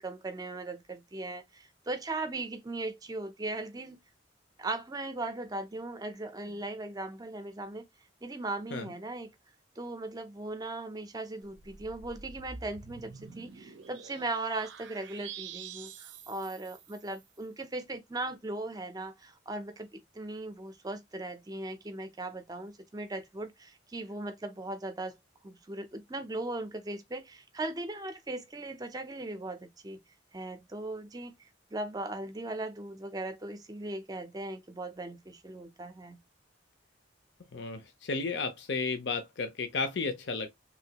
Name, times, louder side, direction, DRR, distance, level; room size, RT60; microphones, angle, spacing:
voice 1, 0.0-4.0 4.6-7.9 8.2-9.3 9.8-25.2 25.4-30.0 30.3-31.4 31.7-36.2, right 2 dB, 20° right, 0.5 m, -38 dB
sound 1, 11.4-17.2, right 6 dB, 70° right, 0.5 m, -47 dB
voice 2, 37.5-40.5, left 4 dB, 65° left, 0.6 m, -33 dB
3.1 x 2.6 x 2.8 m
head